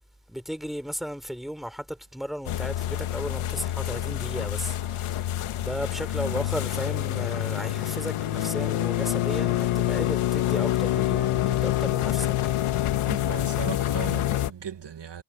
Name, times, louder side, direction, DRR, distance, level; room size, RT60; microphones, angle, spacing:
voice 1, 0.3-12.4, equal, ahead, 4.2 m, -35 dB
sound 1, 2.5-14.5, left 13 dB, 80° left, 2.2 m, -27 dB
voice 2, 13.1-15.2, right 8 dB, 55° right, 2.2 m, -37 dB
supercardioid pair, 45°, 49 cm